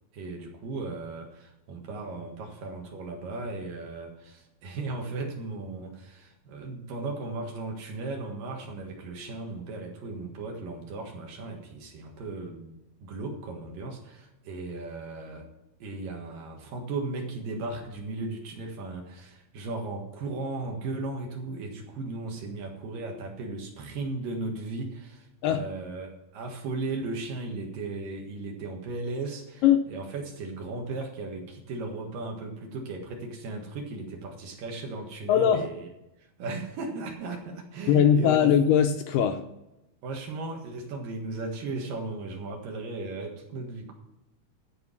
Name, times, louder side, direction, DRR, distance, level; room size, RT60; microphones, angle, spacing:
voice 1, 0.1-15.5 15.8-29.6 29.9-35.9 36.4-38.5 40.0-43.9, right 3 dB, 65° right, 2 dB, 3.2 m, -36 dB
voice 2, 35.3-35.7 37.9-39.5, left 9 dB, 80° left, 6 dB, 2.1 m, -21 dB
14.0 x 4.8 x 7.3 m, 0.92 s
omnidirectional pair, 4.3 m